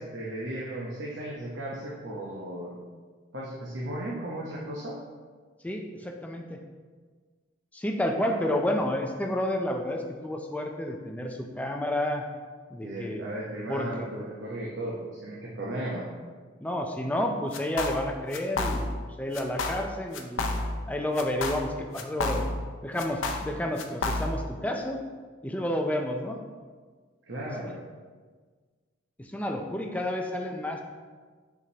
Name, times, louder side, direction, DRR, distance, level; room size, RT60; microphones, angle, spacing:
voice 1, 0.0-2.8 3.3-5.0 12.8-16.1 27.3-27.8, right 1 dB, 65° right, -5 dB, 0.9 m, -35 dB
voice 2, 5.6-6.6 7.7-12.2 12.7-13.2 13.7-14.1 16.6-18.9 19.2-20.5 20.9-22.5 22.8-25.0 25.4-26.4 29.2-30.8, left 1 dB, 5° left, 3 dB, 0.4 m, -30 dB
sound 1, 17.5-18.1 18.3-19.1 19.3-19.9 20.1-20.9 21.2-22.7 23.0-24.5, left 2 dB, 80° left, 0.6 m, -30 dB
6.9 x 5.0 x 2.8 m, 1.5 s
head